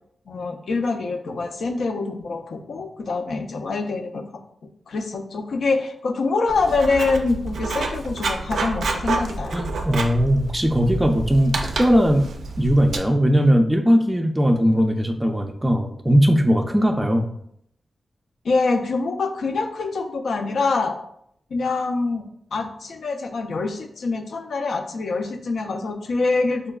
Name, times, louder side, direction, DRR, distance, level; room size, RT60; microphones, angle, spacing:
voice 1, 0.3-4.2 4.9-9.6 18.4-21.0 21.5-22.2 22.5-26.7, left 3 dB, 80° left, 5 dB, 0.4 m, -25 dB
Writing, 6.5-13.0, right 3 dB, 90° right, 0.4 m, -28 dB
voice 2, 9.5-12.3 12.6-17.3, equal, 10° right, 3 dB, 0.3 m, -19 dB
4.9 x 2.2 x 2.3 m, 0.70 s
wide cardioid pair, 90°, 0 cm